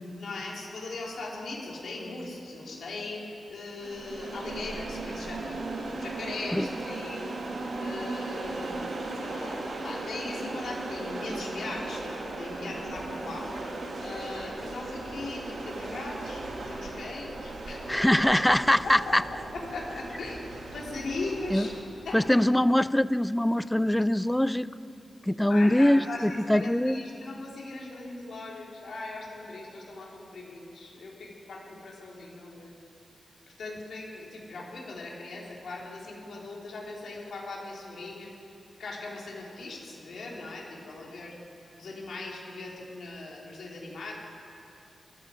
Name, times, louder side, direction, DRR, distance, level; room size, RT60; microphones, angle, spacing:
voice 1, 0.2-13.5 14.0-17.8 19.0-19.1 19.5-20.4 20.7-21.7 22.0-22.2 25.5-32.7 33.6-38.3 38.8-41.3 41.8-44.1, left 2 dB, 75° left, -2 dB, 3.2 m, -39 dB
sound 1, 3.8-21.8, right 2 dB, 60° right, 2.2 m, -37 dB
voice 2, 17.9-19.2 21.5-21.7 22.1-24.7 25.3-27.0, left 1 dB, 5° left, 16 dB, 0.3 m, -23 dB
18.5 x 14.5 x 5.0 m, 2.6 s
wide cardioid pair, 160°, 0 cm